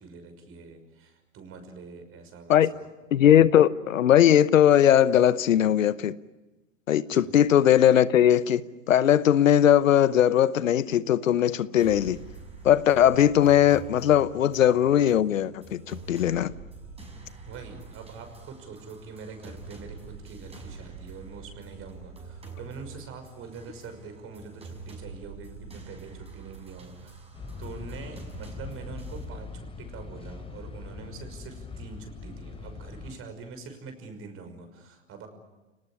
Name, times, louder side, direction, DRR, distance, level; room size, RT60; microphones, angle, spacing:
voice 1, 0.0-2.9 7.1-7.3 17.5-27.2 27.6-35.3, right 4 dB, 35° right, 6.0 m, -44 dB
voice 2, 3.1-6.1 6.9-8.6 8.9-12.2 12.6-16.5, left 10 dB, 80° left, 1.0 m, -19 dB
sound 1, 11.8-29.2, right 4 dB, 15° right, 6.0 m, -45 dB
sound 2, 27.3-33.2, left 4 dB, 15° left, 4.2 m, -41 dB
29.5 x 19.0 x 10.0 m
hypercardioid pair, 105°, 39 cm